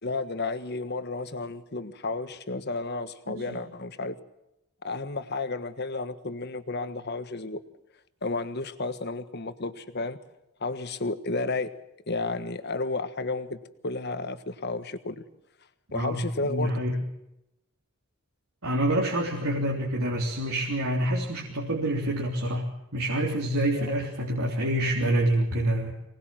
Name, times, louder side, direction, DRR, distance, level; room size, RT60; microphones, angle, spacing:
voice 1, 0.0-4.2 4.8-7.6 8.2-10.2 10.6-11.7 12.1-13.6 13.8-15.2 15.9-17.0 23.8-24.0, left 3 dB, 50° left, 11 dB, 1.4 m, -32 dB
voice 2, 3.3-3.6 15.9-17.0 18.6-25.9, right 1 dB, 85° right, -1 dB, 3.4 m, -27 dB
24.0 x 19.5 x 7.7 m, 0.87 s
head